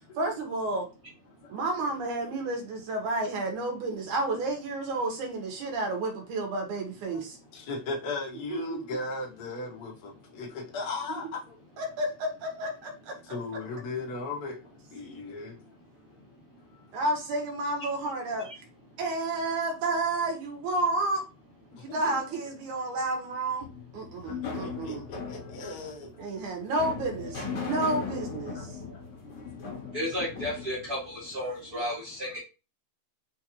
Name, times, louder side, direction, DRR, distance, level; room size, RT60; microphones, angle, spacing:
voice 1, 0.2-0.9 1.5-7.4 8.5-8.8 11.8-13.1 16.9-18.5 19.0-21.2 21.8-23.7 23.9-25.0 26.2-28.7, right 2 dB, 85° right, 2.7 m, -31 dB
voice 2, 7.5-11.6 13.2-14.6 14.9-15.6 21.8-22.2 24.2-26.3 27.7-27.8 28.5-28.7 29.3-29.9, left 3 dB, 70° left, 0.8 m, -37 dB
sound 1, 23.6-31.7, left 5 dB, 45° left, 2.1 m, -38 dB
voice 3, 29.9-32.4, equal, 45° right, 1.3 m, -33 dB
5.6 x 2.6 x 2.9 m
omnidirectional pair, 3.4 m